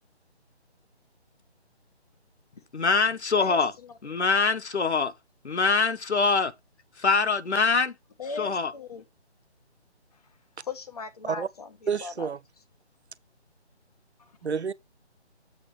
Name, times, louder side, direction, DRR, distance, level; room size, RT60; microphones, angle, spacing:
voice 1, 2.7-3.7 4.0-5.1 5.4-6.5 7.0-7.9 8.4-8.7, left 4 dB, 75° left, 1.2 m, -24 dB
voice 2, 3.4-3.9 8.2-9.0 10.1-10.2 10.6-12.3 14.2-14.4, left 5 dB, 35° left, 1.4 m, -39 dB
voice 3, 11.9-12.4 14.4-14.7, right 6 dB, 70° right, 0.8 m, -28 dB
7.9 x 3.7 x 6.2 m
figure-of-eight pair, 155°, 34 cm